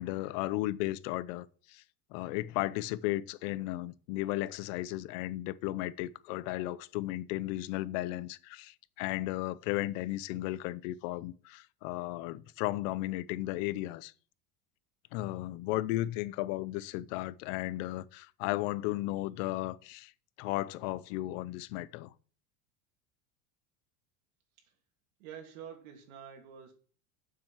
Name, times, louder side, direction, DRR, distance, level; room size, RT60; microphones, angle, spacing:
voice 1, 0.0-1.8 2.1-14.1 15.1-20.1 20.4-22.1, left 16 dB, 65° left, 0.7 m, -35 dB
voice 2, 25.2-26.7, right 8 dB, 85° right, 2.9 m, -47 dB
7.4 x 6.1 x 7.4 m
cardioid pair, 155°, 41 cm